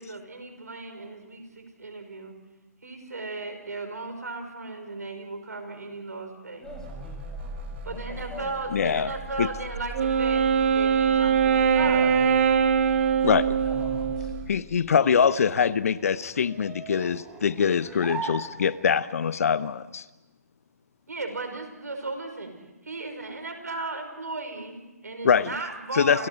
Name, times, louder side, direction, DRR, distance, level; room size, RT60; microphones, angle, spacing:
voice 1, 0.0-2.4 2.8-6.7 7.8-10.5 10.7-12.2 21.1-22.5 22.8-26.3, right 3 dB, 80° right, 6 dB, 5.2 m, -36 dB
voice 2, 6.6-8.5 11.8-12.4 13.6-14.3, left 2 dB, 5° left, 1 dB, 5.7 m, -43 dB
sound 1, 6.6-14.5, equal, 40° right, 4.3 m, -39 dB
voice 3, 8.7-9.1 9.4-9.5 13.2-13.6 14.5-20.0 25.2-25.5 25.9-26.3, left 7 dB, 60° left, 17 dB, 0.8 m, -23 dB
Wind instrument woodwind instrument, 9.9-14.5, right 7 dB, 55° right, 2.0 m, -22 dB
sound 2, 14.2-19.2, right 5 dB, 15° right, 3.1 m, -40 dB
28.5 x 28.5 x 4.8 m, 1.1 s
figure-of-eight pair, 130°, 9 cm